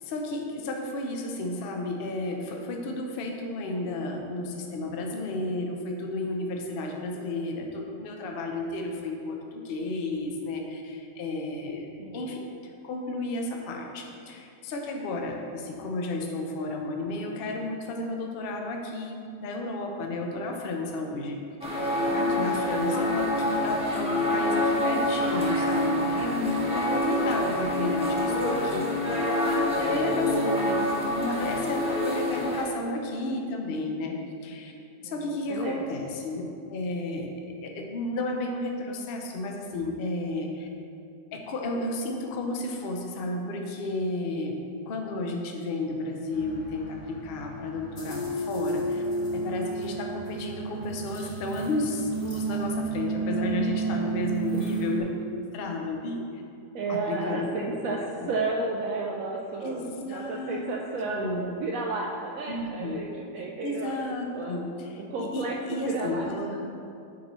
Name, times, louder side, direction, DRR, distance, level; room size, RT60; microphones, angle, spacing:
voice 1, 0.0-12.4 12.8-21.4 21.6-29.1 29.4-34.7 35.0-36.4 36.7-37.3 37.6-40.7 41.3-44.6 44.9-49.0 49.3-55.0 55.5-56.2 56.9-57.6 57.9-58.3 59.6-60.7 61.1-61.5 62.5-63.1 63.4-66.6, left 2 dB, 70° left, 1 dB, 0.5 m, -32 dB
sound 1, 21.6-32.6, left 1 dB, 5° right, 0.6 m, -26 dB
voice 2, 22.1-22.8 29.7-30.3 35.0-35.1 35.5-35.8 56.7-58.0 58.3-64.0 64.3-64.6 65.1-66.3, right 3 dB, 75° right, -1 dB, 0.7 m, -32 dB
sound 2, 46.3-55.0, right 3 dB, 35° left, 1.0 m, -32 dB
8.6 x 4.3 x 3.0 m, 2.6 s
omnidirectional pair, 1.9 m